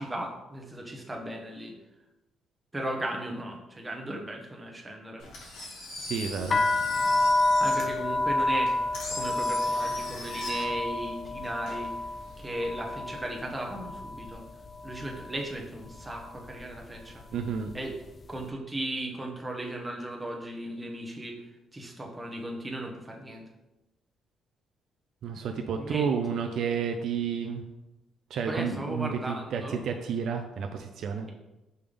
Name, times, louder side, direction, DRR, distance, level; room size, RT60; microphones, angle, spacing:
voice 1, 0.0-1.7 2.7-5.2 7.6-11.9 12.4-14.4 14.8-17.2 17.7-17.9 18.3-21.4 21.7-23.4 25.8-26.2 28.5-29.8, right 1 dB, 10° right, 1 dB, 1.0 m, -36 dB
Engine, 5.2-12.5, left 2 dB, 85° left, 1.8 m, -41 dB
voice 2, 6.0-6.6 17.3-17.7 25.2-27.6 28.3-31.3, right 6 dB, 65° right, 4 dB, 0.5 m, -31 dB
sound 1, 6.4-14.4 14.6-15.3 15.9-16.2 16.5-17.9, left 2 dB, 35° left, 0.3 m, -29 dB
5.4 x 3.4 x 5.1 m, 0.98 s
cardioid pair, 130°, 0 cm